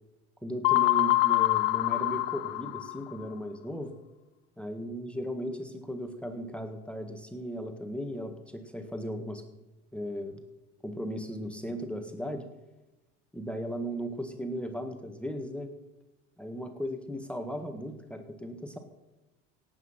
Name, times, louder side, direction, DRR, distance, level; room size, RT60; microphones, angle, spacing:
voice 1, 0.4-3.9 4.6-9.4 9.9-10.4 10.8-12.5 13.3-15.7 16.4-18.8, equal, 5° left, 6 dB, 1.8 m, -36 dB
sound 1, 0.6-3.2, left 19 dB, 65° left, 0.8 m, -25 dB
17.5 x 8.6 x 5.8 m, 1.0 s
hypercardioid pair, 80°, 36 cm